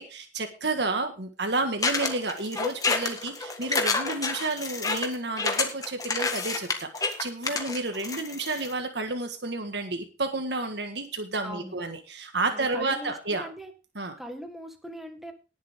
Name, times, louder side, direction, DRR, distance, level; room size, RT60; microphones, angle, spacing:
voice 1, 0.0-13.4 13.9-14.1, right 3 dB, 70° right, 5 dB, 1.7 m, -31 dB
sound 1, 1.8-8.7, left 3 dB, 20° left, 1.6 m, -28 dB
voice 2, 11.4-11.8 12.5-13.7 14.2-15.3, equal, ahead, 5 dB, 1.7 m, -40 dB
19.0 x 7.3 x 3.7 m, 0.33 s
head